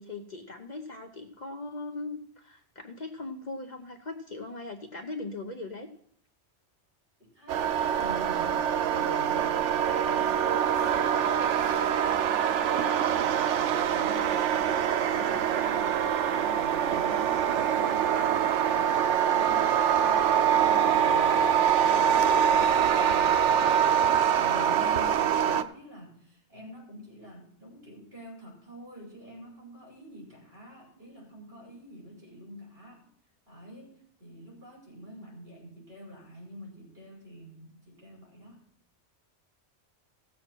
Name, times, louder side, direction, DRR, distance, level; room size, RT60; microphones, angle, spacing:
voice 1, 0.0-5.9, left 3 dB, 45° left, 4 dB, 0.9 m, -39 dB
voice 2, 7.2-33.1 33.5-38.6, equal, 60° right, -5 dB, 5.0 m, -47 dB
sound 1, 7.5-25.6, right 8 dB, 90° right, 0.9 m, -24 dB
16.0 x 7.2 x 4.5 m, 0.65 s
omnidirectional pair, 1.2 m